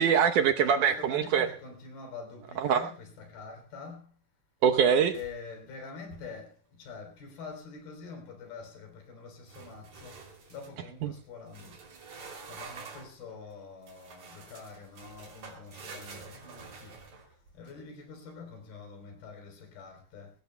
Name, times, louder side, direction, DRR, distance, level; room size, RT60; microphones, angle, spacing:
voice 1, 0.0-1.5 2.6-2.9 4.6-5.2 11.0-11.1, right 7 dB, 70° right, 2.1 m, -24 dB
voice 2, 0.6-4.1 5.1-10.2 10.5-11.7 12.2-17.0 17.6-20.3, left 5 dB, 85° left, 5.2 m, -45 dB
sound 1, 5.1-5.6 6.0-6.4 9.5-10.8 11.5-13.2 13.9-17.7, right 4 dB, 55° right, 4.1 m, -48 dB
23.0 x 17.5 x 2.2 m
omnidirectional pair, 4.2 m